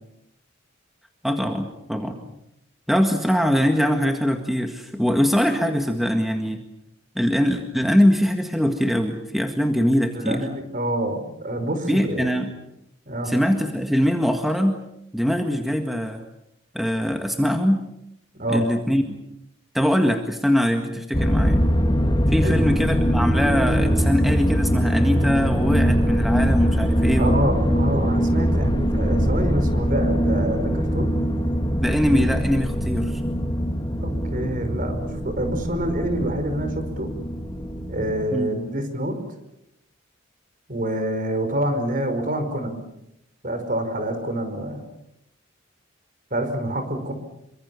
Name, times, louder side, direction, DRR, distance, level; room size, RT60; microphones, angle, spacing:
voice 1, 1.2-2.2 2.9-6.6 7.2-10.4 11.9-12.5 13.3-14.8 15.1-16.2 16.7-17.8 18.5-19.2 19.7-21.6 22.3-27.4 31.8-33.2 38.3-38.5, equal, ahead, 4 dB, 1.8 m, -22 dB
voice 2, 10.1-12.3 13.1-13.3 18.4-18.6 22.4-22.6 27.2-31.1 34.0-37.1 37.9-39.2 40.7-42.8 43.4-44.9 46.3-47.1, right 1 dB, 40° right, 8 dB, 5.2 m, -27 dB
sound 1, 21.1-38.2, equal, 20° left, 2.4 m, -22 dB
27.5 x 25.0 x 7.1 m, 0.83 s
head